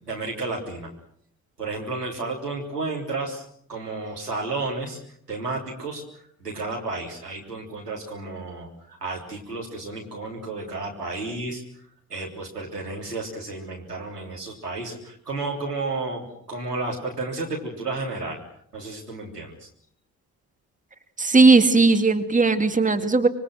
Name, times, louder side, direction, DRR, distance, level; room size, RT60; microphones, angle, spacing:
voice 1, 0.1-0.9 1.6-3.4 3.7-5.0 5.3-6.0 6.4-11.6 12.1-18.4 18.7-19.7, right 3 dB, 90° right, -2 dB, 3.7 m, -32 dB
voice 2, 21.2-23.3, right 3 dB, 15° right, 9 dB, 2.3 m, -17 dB
26.0 x 24.0 x 6.4 m, 0.67 s
figure-of-eight pair, 40°, 46 cm